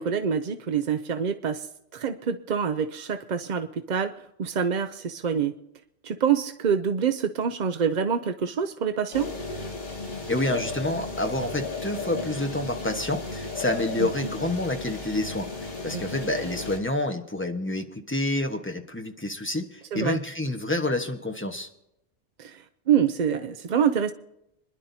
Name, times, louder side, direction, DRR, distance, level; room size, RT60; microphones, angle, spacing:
voice 1, 0.0-4.1 4.4-5.5 6.0-9.3 14.0-14.1 15.9-16.1 19.9-20.2 22.4-24.1, right 7 dB, 50° right, 8 dB, 0.6 m, -26 dB
sound 1, 9.1-16.8, left 3 dB, 55° left, 3.2 m, -35 dB
voice 2, 10.3-15.5 15.8-21.7, left 1 dB, 10° left, 4 dB, 1.2 m, -28 dB
26.0 x 11.0 x 2.7 m, 0.82 s
omnidirectional pair, 1.2 m